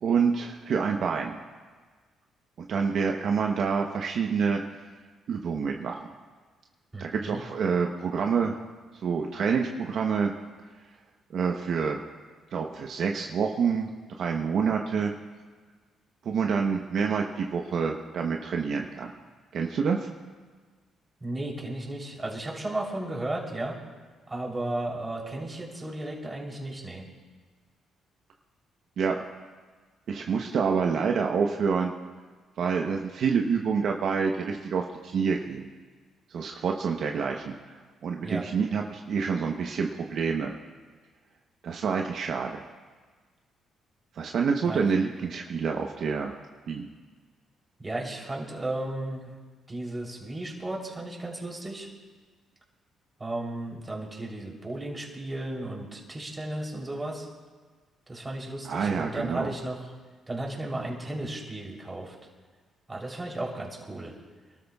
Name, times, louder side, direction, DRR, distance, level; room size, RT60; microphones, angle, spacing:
voice 1, 0.0-1.3 2.6-4.6 5.3-6.1 7.0-8.6 9.0-10.3 11.3-12.0 12.5-13.9 14.2-15.1 16.2-19.1 19.5-20.1 29.0-29.2 30.1-31.9 32.6-35.7 36.3-37.6 38.0-40.5 41.6-42.6 44.2-46.3 46.7-46.9 58.6-59.5, right 6 dB, 65° right, 2 dB, 0.9 m, -27 dB
voice 2, 6.9-7.4 21.2-23.8 24.3-27.1 38.2-38.4 44.6-44.8 45.2-45.4 47.8-49.3 49.7-51.9 53.2-57.3 58.1-59.9 60.3-62.1 62.9-64.1, right 1 dB, 20° right, -1 dB, 3.5 m, -34 dB
25.0 x 13.0 x 2.4 m, 1.4 s
cardioid pair, 80°, 0 cm